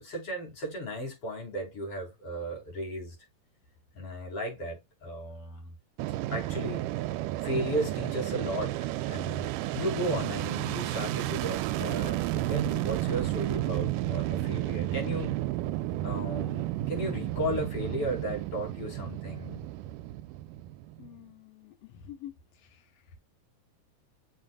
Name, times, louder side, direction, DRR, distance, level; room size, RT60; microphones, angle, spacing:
voice 1, 0.0-3.2 3.9-5.7 6.3-6.9 7.4-15.4 16.0-19.6, equal, 45° left, 4.7 m, -35 dB
Fixed-wing aircraft airplane, 6.0-21.2, right 15 dB, 80° right, 2.1 m, -32 dB
voice 2, 21.0-22.9, left 11 dB, 70° left, 1.5 m, -48 dB
7.6 x 5.6 x 2.3 m
omnidirectional pair, 3.8 m